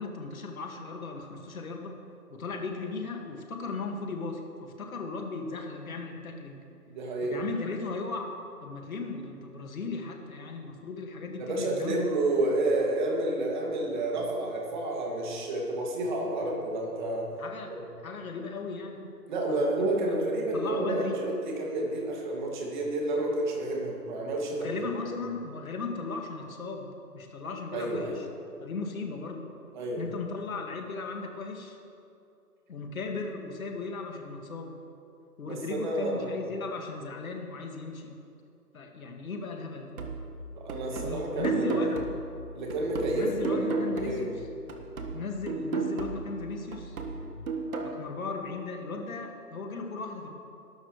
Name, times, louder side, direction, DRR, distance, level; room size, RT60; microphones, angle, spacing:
voice 1, 0.0-2.0 2.3-6.6 7.2-8.3 8.6-12.0 17.4-17.7 18.0-19.1 19.5-21.2 24.5-26.9 27.1-28.3 28.6-29.4 30.0-31.8 32.7-34.7 35.4-38.2 38.7-40.0 40.9-42.0 43.1-44.4 45.1-47.0 47.8-50.3, left 4 dB, 60° left, 2 dB, 2.2 m, -37 dB
voice 2, 6.9-7.4 11.4-17.3 19.3-24.7 27.7-28.2 29.7-30.0 35.5-36.4 40.6-41.9 42.5-43.7 44.0-44.3 47.2-47.3, right 2 dB, 30° right, -1 dB, 2.4 m, -30 dB
sound 1, 40.0-44.4 44.7-48.0, right 3 dB, 60° right, 1.8 m, -33 dB
19.5 x 12.0 x 3.3 m, 2.6 s
hypercardioid pair, 155°, 47 cm